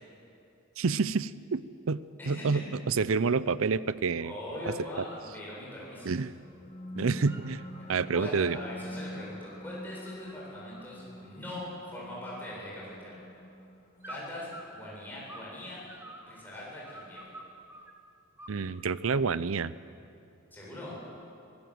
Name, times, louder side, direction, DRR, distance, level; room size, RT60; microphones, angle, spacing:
voice 1, 0.8-1.6 1.9-2.0 2.3-4.3 6.0-6.3 7.0-7.6 7.9-8.6 18.5-19.7, right 4 dB, 75° right, 17 dB, 0.6 m, -28 dB
voice 2, 2.2-2.7 4.2-6.1 8.1-13.1 14.1-15.8 16.3-17.2 20.5-21.0, left 1 dB, 10° left, -6 dB, 7.7 m, -41 dB
sound 1, 5.1-5.3 5.7-6.6 6.9-7.8 8.3-11.0 11.4-11.9 12.2-13.2 14.0-15.5 15.9-17.9 18.4-19.1, right 1 dB, 10° right, 1.7 m, -50 dB
sound 2, 6.3-17.3, left 1 dB, 30° left, 1.6 m, -46 dB
24.5 x 17.0 x 7.9 m, 2.6 s
head